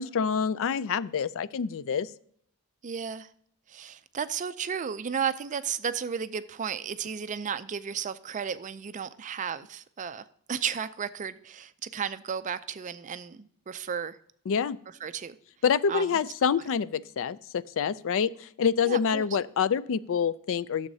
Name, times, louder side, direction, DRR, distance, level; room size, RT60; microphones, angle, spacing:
voice 1, 0.0-2.1 14.5-14.8 15.6-20.9, left 6 dB, 60° left, 0.4 m, -27 dB
voice 2, 2.8-3.3 3.7-14.2 15.0-15.4 15.9-16.1 18.8-19.3, right 7 dB, 35° right, 0.4 m, -33 dB
12.5 x 7.3 x 2.7 m
head